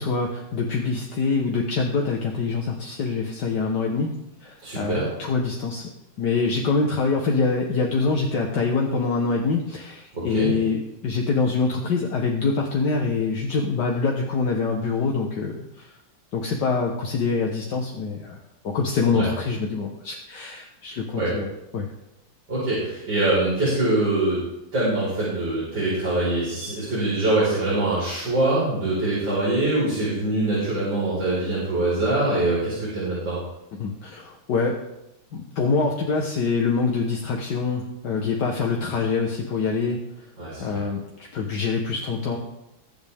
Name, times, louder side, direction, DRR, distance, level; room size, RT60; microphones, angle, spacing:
voice 1, 0.0-4.1 4.4-5.9 6.2-16.0 16.3-21.9 33.8-34.9 35.3-40.3 40.6-41.0 41.3-42.4, left 4 dB, 65° left, 0 dB, 1.8 m, -25 dB
voice 2, 4.6-5.0 10.1-10.5 19.1-19.3 21.2-21.3 22.5-24.4 24.7-33.4 40.4-40.6, right 2 dB, 70° right, -9 dB, 5.7 m, -23 dB
21.5 x 8.0 x 3.6 m, 0.91 s
omnidirectional pair, 2.0 m